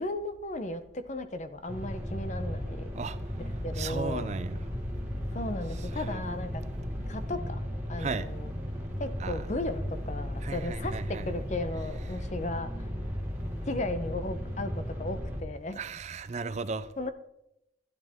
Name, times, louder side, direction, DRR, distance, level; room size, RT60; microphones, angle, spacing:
voice 1, 0.0-2.9 3.4-4.3 5.3-6.6 7.1-7.6 7.9-8.5 9.0-12.9 13.7-15.8 17.0-17.1, left 2 dB, 40° left, 0.7 m, -35 dB
sound 1, 1.7-15.4, equal, 10° right, 1.6 m, -35 dB
voice 2, 3.8-4.6 6.0-6.2 8.0-8.3 9.2-9.4 10.4-11.2 15.8-16.9, right 4 dB, 35° right, 0.4 m, -35 dB
12.0 x 9.9 x 3.6 m
head